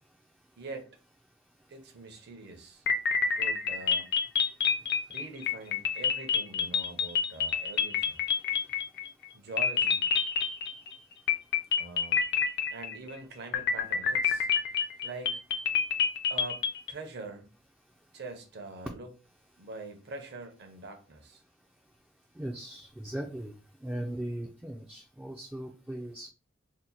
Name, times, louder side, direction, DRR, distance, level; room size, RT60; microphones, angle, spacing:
voice 1, 0.6-0.9 1.7-2.8 3.3-4.1 5.1-8.2 9.3-10.1 11.8-12.2 12.7-14.5 15.0-15.4 16.3-17.5 18.1-19.1 19.6-21.4, right 3 dB, 55° right, 0.7 m, -43 dB
sound 1, 2.9-9.3 9.6-11.0 11.3-13.1 13.5-16.9, left 6 dB, 55° left, 0.5 m, -28 dB
voice 2, 22.4-23.5 23.8-26.3, right 1 dB, 5° right, 0.3 m, -38 dB
2.8 x 2.1 x 3.9 m
head